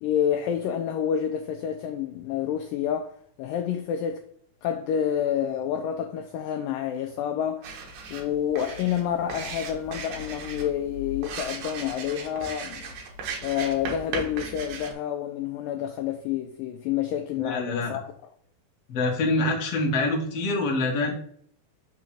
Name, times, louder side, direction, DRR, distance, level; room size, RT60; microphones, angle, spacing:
voice 1, 0.0-3.1 3.4-4.2 4.6-7.7 8.1-12.9 13.4-18.0, left 9 dB, 90° left, 1.9 m, -28 dB
sound 1, 7.6-14.9, right 3 dB, 70° right, 2.6 m, -37 dB
voice 2, 17.4-18.0 18.9-21.1, left 2 dB, 55° left, 1.8 m, -25 dB
6.0 x 3.7 x 5.8 m
omnidirectional pair, 4.5 m